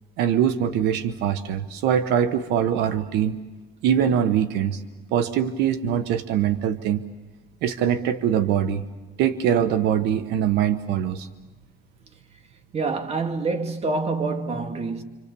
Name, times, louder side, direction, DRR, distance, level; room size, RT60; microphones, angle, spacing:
voice 1, 0.2-3.4 3.8-4.8 5.1-7.0 7.6-8.8 9.2-11.3, right 9 dB, 90° right, 1.1 m, -22 dB
voice 2, 12.7-15.0, right 3 dB, 40° right, 2.3 m, -26 dB
28.0 x 26.5 x 6.9 m
cardioid pair, 110°, 17 cm